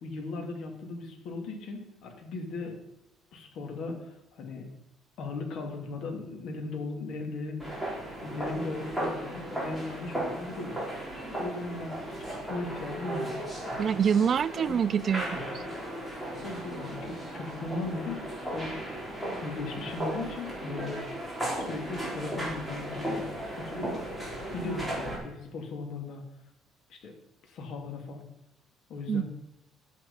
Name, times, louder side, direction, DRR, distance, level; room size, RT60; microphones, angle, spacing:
voice 1, 0.0-2.8 3.3-4.7 5.2-7.6 8.0-10.7 11.4-12.0 12.5-13.4 14.7-14.8 16.4-18.2 18.5-18.7 19.4-21.1 21.6-23.3 23.6-24.0 24.5-26.2 26.9-27.1 27.5-28.2 28.9-29.2, left 3 dB, 60° left, 2 dB, 2.9 m, -37 dB
sound 1, 7.6-25.1, right 1 dB, 5° left, 3.9 m, -36 dB
voice 2, 13.8-15.6 29.1-29.2, right 7 dB, 35° right, 16 dB, 0.4 m, -26 dB
11.0 x 9.4 x 5.6 m, 0.86 s
cardioid pair, 150°, 0 cm